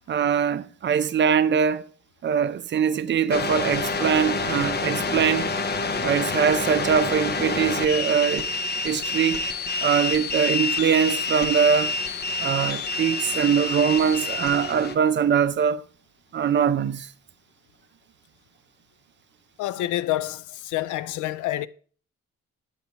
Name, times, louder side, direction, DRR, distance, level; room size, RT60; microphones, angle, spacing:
voice 1, 0.1-1.8 2.2-5.5 6.0-8.5 8.8-9.4 9.8-11.9 12.4-15.8 16.3-17.1, right 7 dB, 40° right, 0.5 m, -22 dB
sound 1, 3.3-15.0, left 3 dB, 35° left, 0.7 m, -27 dB
voice 2, 19.6-21.7, left 14 dB, 80° left, 0.4 m, -28 dB
8.4 x 7.9 x 2.8 m
cardioid pair, 90°, 30 cm